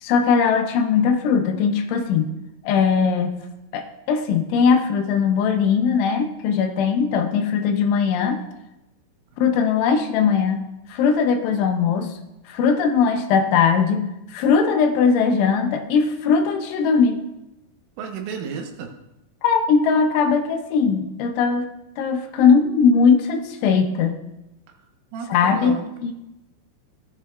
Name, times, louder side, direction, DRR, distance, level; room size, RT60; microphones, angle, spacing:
voice 1, 0.0-2.3 2.6-3.3 3.7-8.4 9.4-10.6 10.9-12.1 12.5-14.0 14.3-17.2 19.4-21.7 22.0-24.2 25.3-26.1, left 6 dB, 80° left, 5 dB, 3.2 m, -19 dB
voice 2, 18.0-18.9 25.1-25.9, right 6 dB, 80° right, 3 dB, 3.6 m, -32 dB
16.5 x 10.0 x 2.4 m, 0.94 s
omnidirectional pair, 5.7 m